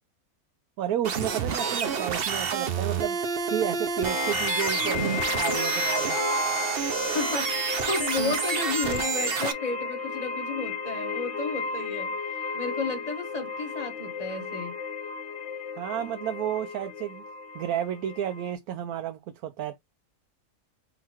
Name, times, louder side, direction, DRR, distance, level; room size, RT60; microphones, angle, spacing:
voice 1, 0.8-3.2 3.5-6.2 15.8-17.2 17.5-19.8, right 10 dB, 75° right, 1.1 m, -31 dB
sound 1, 1.0-9.5, right 6 dB, 50° right, 0.8 m, -28 dB
sound 2, 4.0-18.5, left 6 dB, 50° left, 1.1 m, -33 dB
voice 2, 7.0-14.8, left 4 dB, 25° left, 1.3 m, -33 dB
4.0 x 2.9 x 4.3 m
omnidirectional pair, 1.6 m